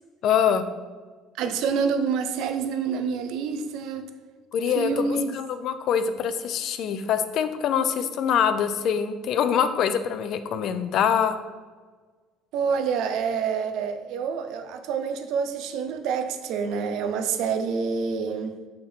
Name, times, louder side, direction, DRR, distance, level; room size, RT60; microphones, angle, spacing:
voice 1, 0.2-0.6 4.5-11.4, left 8 dB, 55° left, 11 dB, 0.5 m, -24 dB
voice 2, 1.4-4.1 4.8-5.4 12.5-18.6, right 6 dB, 70° right, 8 dB, 0.7 m, -27 dB
6.8 x 3.7 x 5.5 m, 1.4 s
cardioid pair, 120°, 0 cm